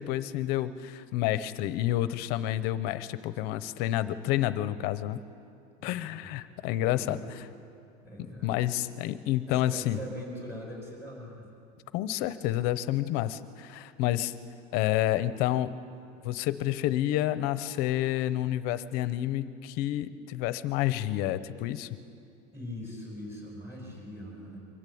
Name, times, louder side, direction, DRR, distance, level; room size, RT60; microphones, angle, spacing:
voice 1, 0.0-5.2 5.8-7.2 8.4-10.0 11.9-14.3 14.7-15.7 16.2-21.9, left 13 dB, 50° left, 14 dB, 0.8 m, -29 dB
voice 2, 5.8-6.3 6.8-7.3 8.0-8.6 9.5-11.5 22.5-24.6, left 1 dB, 10° right, -2 dB, 5.5 m, -42 dB
23.5 x 14.5 x 8.6 m, 2.5 s
cardioid pair, 170°, 20 cm